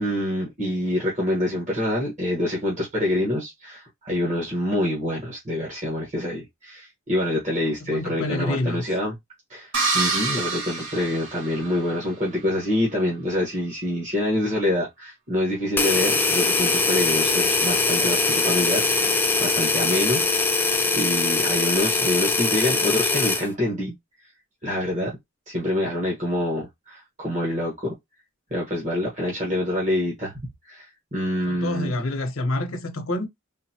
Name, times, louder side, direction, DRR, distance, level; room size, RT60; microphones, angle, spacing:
voice 1, 0.0-9.1 9.5-24.0 24.6-25.2 25.5-27.9 28.5-30.3 30.7-31.9, left 1 dB, 35° right, 1.2 m, -26 dB
voice 2, 7.6-8.9 31.5-33.3, left 2 dB, 75° left, 0.8 m, -28 dB
sound 1, 9.7-12.0, right 4 dB, 60° right, 1.1 m, -26 dB
sound 2, 15.8-23.5, left 3 dB, 10° left, 0.4 m, -22 dB
3.8 x 2.2 x 2.8 m
head